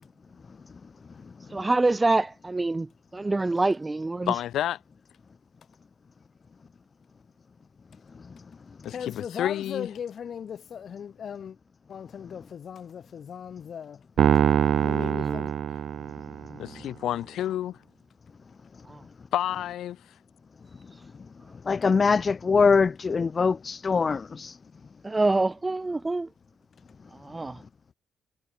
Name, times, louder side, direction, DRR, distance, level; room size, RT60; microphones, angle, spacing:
voice 1, 1.5-4.3 15.2-15.4 18.9-19.0 25.0-26.3 27.2-27.6, right 2 dB, 20° right, 0.9 m, -26 dB
voice 2, 4.3-4.8 8.8-9.9 16.6-17.8 19.3-20.0, left 12 dB, 80° left, 1.4 m, -29 dB
voice 3, 8.9-11.6 11.9-14.0 14.8-15.5, left 8 dB, 55° left, 7.2 m, -38 dB
Piano, 14.2-16.6, right 9 dB, 65° right, 1.6 m, -24 dB
voice 4, 21.7-24.6, left 5 dB, 35° left, 0.5 m, -23 dB
cardioid pair, 100°, 0 cm